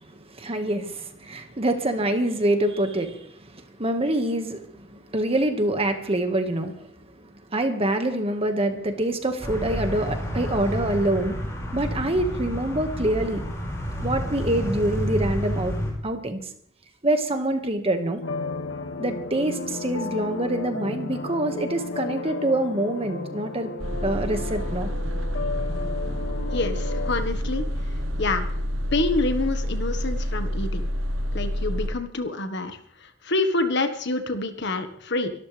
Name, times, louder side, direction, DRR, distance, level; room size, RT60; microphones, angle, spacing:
voice 1, 0.0-11.4 11.7-13.4 14.0-15.7 16.0-16.5 17.0-18.2 19.0-23.7 24.0-24.9, right 1 dB, 30° right, 6 dB, 1.8 m, -26 dB
sound 1, 9.4-15.9, equal, 15° left, 5.8 m, -30 dB
sound 2, 18.2-27.1, left 3 dB, 75° left, 2.1 m, -34 dB
sound 3, 23.8-31.9, equal, 80° right, 1.3 m, -28 dB
voice 2, 26.5-27.6 28.2-28.4 28.9-30.8 31.3-32.8 33.2-35.3, left 2 dB, 60° left, 7 dB, 1.6 m, -27 dB
24.0 x 13.0 x 3.5 m, 0.64 s
head